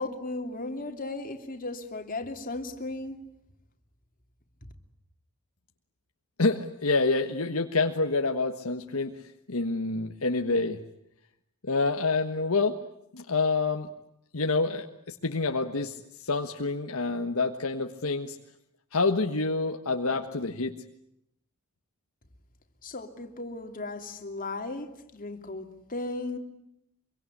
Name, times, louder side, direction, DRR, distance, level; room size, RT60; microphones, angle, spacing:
voice 1, 0.0-3.2 22.8-26.4, left 2 dB, 40° left, 4 dB, 2.9 m, -36 dB
voice 2, 6.4-9.1 9.5-10.8 11.7-12.8 13.1-13.9 14.3-18.4 18.9-20.7, left 3 dB, 70° left, 5 dB, 1.5 m, -27 dB
25.5 x 24.0 x 9.8 m, 0.79 s
head